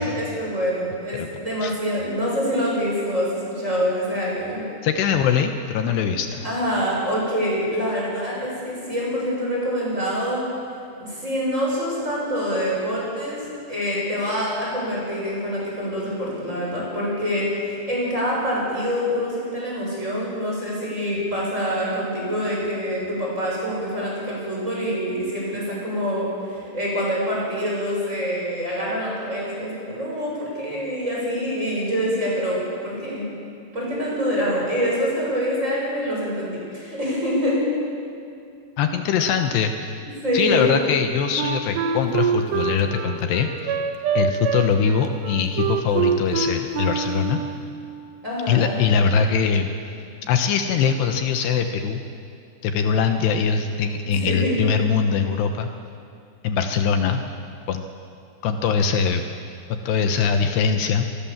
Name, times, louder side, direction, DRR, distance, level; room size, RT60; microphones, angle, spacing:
voice 1, 0.0-4.6 6.4-10.4 11.0-33.3 33.7-37.6 40.2-40.7 48.2-48.8 54.0-54.6, equal, 15° right, -5 dB, 7.7 m, -25 dB
voice 2, 4.8-6.4 38.8-40.0 40.3-43.7 44.1-47.4 48.5-49.7 50.3-52.0 52.6-55.7 56.4-57.2 57.7-57.8 58.4-59.2 59.7-61.1, left 6 dB, 75° left, 6 dB, 3.1 m, -22 dB
Wind instrument woodwind instrument, 41.4-47.7, right 7 dB, 75° right, 3.5 m, -25 dB
28.5 x 19.0 x 7.4 m, 2.4 s
omnidirectional pair, 5.0 m